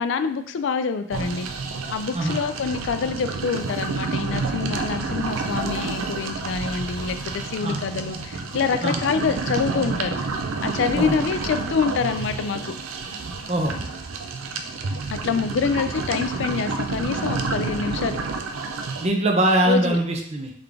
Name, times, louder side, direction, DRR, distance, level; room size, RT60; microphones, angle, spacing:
voice 1, 0.0-1.5 1.9-10.2 10.6-12.7 15.1-18.2 19.7-20.0, left 5 dB, 60° left, 9 dB, 0.3 m, -26 dB
sound 1, 1.1-19.1, right 4 dB, 90° right, 0.5 m, -29 dB
voice 2, 13.5-13.8 19.0-20.5, right 1 dB, 35° right, 2 dB, 0.6 m, -22 dB
3.8 x 3.5 x 3.4 m, 0.68 s
head